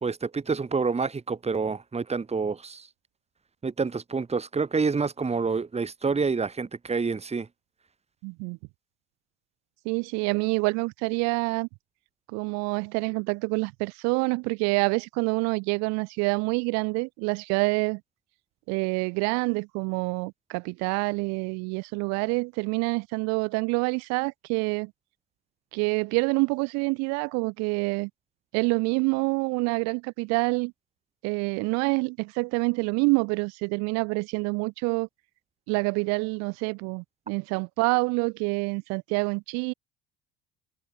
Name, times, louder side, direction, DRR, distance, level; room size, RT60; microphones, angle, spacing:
voice 1, 0.0-2.9 3.6-7.5, right 4 dB, 20° right, 2.4 m, -28 dB
voice 2, 8.2-8.6 9.9-11.7 12.3-18.0 18.7-24.9 25.7-28.1 28.5-30.7 31.2-35.1 35.7-39.7, right 30 dB, 60° right, 2.2 m, -27 dB
figure-of-eight pair, 55°, 29 cm